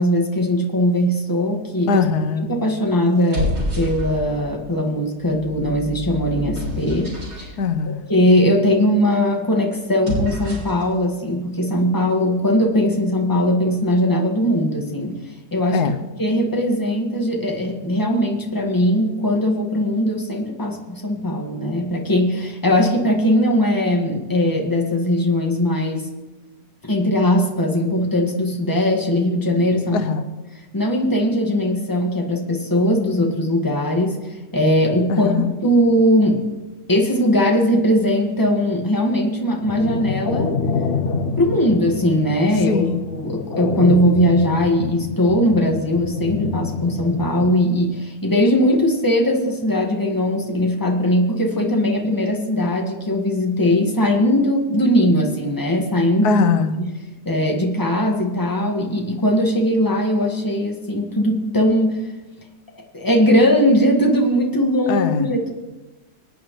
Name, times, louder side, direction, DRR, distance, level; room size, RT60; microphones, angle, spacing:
voice 1, 0.0-2.0 2.5-7.5 8.1-15.2 15.5-15.8 16.2-26.1 26.8-30.0 30.7-35.3 35.6-36.4 36.9-40.5 41.4-56.4 56.8-56.9 57.2-62.1 62.9-65.5, equal, 15° left, 0 dB, 1.7 m, -19 dB
voice 2, 1.9-2.5 7.6-8.0 15.7-16.0 29.9-30.3 35.1-35.5 42.7-43.1 56.2-56.8 64.9-65.3, left 5 dB, 90° left, 10 dB, 1.3 m, -21 dB
sound 1, 3.1-4.5 5.2-7.5 9.9-10.8, equal, 80° right, 4.2 m, -28 dB
sound 2, 39.6-47.5, left 4 dB, 50° left, 0.8 m, -26 dB
24.5 x 9.2 x 3.2 m, 1.1 s
omnidirectional pair, 1.6 m